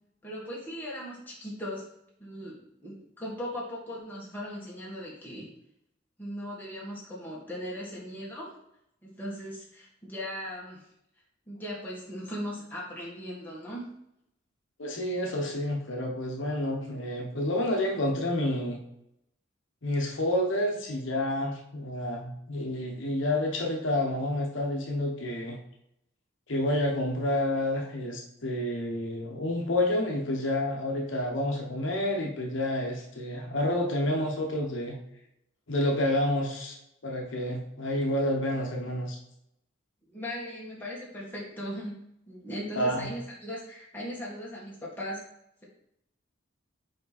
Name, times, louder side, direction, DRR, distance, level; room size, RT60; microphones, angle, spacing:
voice 1, 0.2-1.8 2.2-5.5 6.2-8.5 9.0-10.9 11.5-13.9 40.1-45.2, equal, 10° left, -6 dB, 1.7 m, -38 dB
voice 2, 14.8-18.8 19.8-25.6 26.5-35.0 35.7-36.8 37.0-39.2 42.8-43.1, left 1 dB, 70° left, 0 dB, 1.0 m, -29 dB
5.1 x 4.7 x 4.1 m, 0.79 s
head